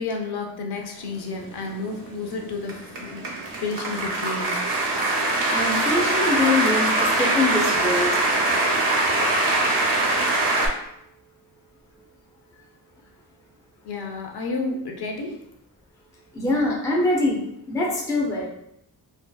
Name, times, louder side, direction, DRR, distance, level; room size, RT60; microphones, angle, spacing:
voice 1, 0.0-3.2 3.6-4.6 13.8-15.4, left 3 dB, 70° left, 2 dB, 0.5 m, -31 dB
sound 1, 1.4-10.7, right 2 dB, 75° right, 0.6 m, -23 dB
voice 2, 5.2-8.6 16.3-18.5, left 2 dB, 10° left, -2 dB, 0.3 m, -24 dB
2.6 x 2.2 x 2.2 m, 0.77 s
wide cardioid pair, 165°, 41 cm